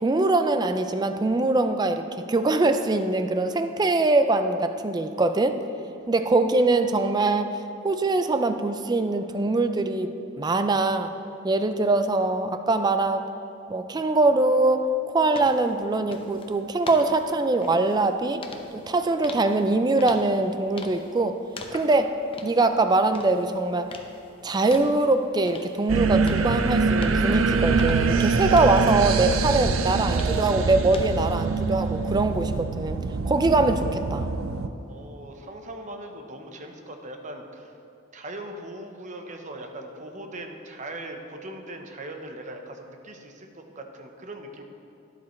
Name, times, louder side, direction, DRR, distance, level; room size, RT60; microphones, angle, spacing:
voice 1, 0.0-5.6 6.1-11.1 11.4-13.2 13.7-14.9 15.1-18.4 18.7-21.4 21.7-23.9 24.4-33.0 33.2-34.3, right 2 dB, 20° right, 8 dB, 0.4 m, -23 dB
sound 1, 15.3-31.2, left 3 dB, 25° left, 0.7 m, -44 dB
sound 2, 25.9-34.7, right 4 dB, 75° right, 0.5 m, -24 dB
voice 2, 34.9-37.7 38.1-44.6, right 1 dB, 40° right, 4 dB, 0.9 m, -40 dB
12.0 x 10.5 x 3.2 m, 2.8 s
head